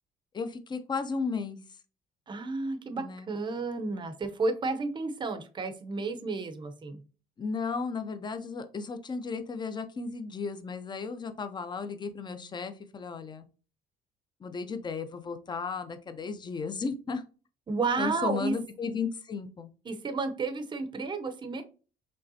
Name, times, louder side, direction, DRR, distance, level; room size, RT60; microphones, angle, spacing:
voice 1, 0.3-1.6 3.0-3.3 7.4-13.4 14.4-17.2 18.0-19.7, left 5 dB, 25° left, 0.6 m, -34 dB
voice 2, 2.3-7.0 17.7-18.5 19.9-21.6, right 3 dB, 25° right, 0.7 m, -32 dB
5.4 x 3.3 x 2.7 m
cardioid pair, 110°, 17 cm